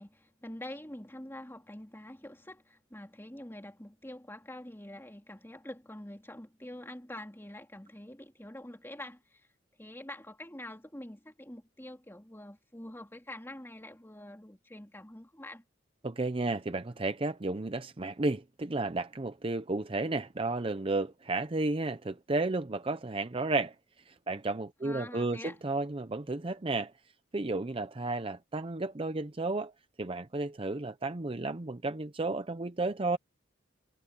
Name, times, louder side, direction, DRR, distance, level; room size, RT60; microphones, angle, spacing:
voice 1, 0.0-9.5 9.8-15.6 24.8-25.6, left 1 dB, 10° left, 3.0 m, -46 dB
voice 2, 16.0-23.7 24.1-26.9 27.3-29.7 30.0-33.2, right 2 dB, 30° right, 0.6 m, -32 dB
head